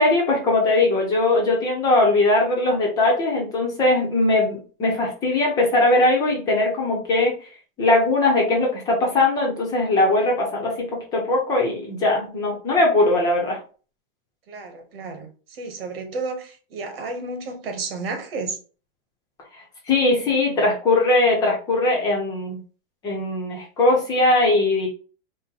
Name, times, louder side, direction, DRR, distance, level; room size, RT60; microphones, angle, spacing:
voice 1, 0.0-7.3 7.8-13.6 19.5-22.6 23.0-24.9, left 2 dB, 15° left, 0.7 m, -20 dB
voice 2, 14.5-18.6, right 3 dB, 80° right, 1.3 m, -32 dB
4.4 x 2.2 x 3.7 m
supercardioid pair, 175°, 29 cm